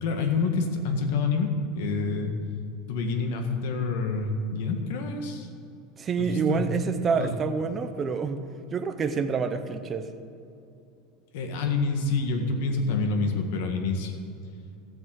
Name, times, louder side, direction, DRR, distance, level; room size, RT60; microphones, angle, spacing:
voice 1, 0.0-2.4 2.9-5.5 6.2-6.7 7.2-7.4 11.3-14.1, left 4 dB, 60° left, 5 dB, 1.7 m, -27 dB
voice 2, 6.0-8.4 8.7-10.1, right 5 dB, 20° right, 8 dB, 0.7 m, -27 dB
13.5 x 7.8 x 8.0 m, 2.7 s
supercardioid pair, 175°, 0 cm